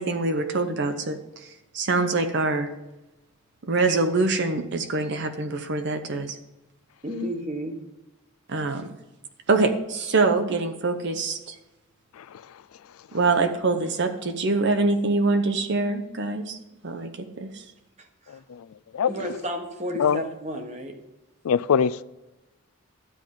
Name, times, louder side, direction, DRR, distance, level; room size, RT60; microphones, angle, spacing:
voice 1, 0.0-2.7 3.7-6.4 8.5-8.9 9.5-11.6 13.1-16.6 16.8-17.6, right 3 dB, 55° right, 0.7 m, -24 dB
voice 2, 7.0-7.8 18.0-18.4 19.1-21.0, equal, 30° right, 1.2 m, -32 dB
voice 3, 21.4-22.0, left 7 dB, 75° left, 0.4 m, -21 dB
12.5 x 9.2 x 3.7 m
head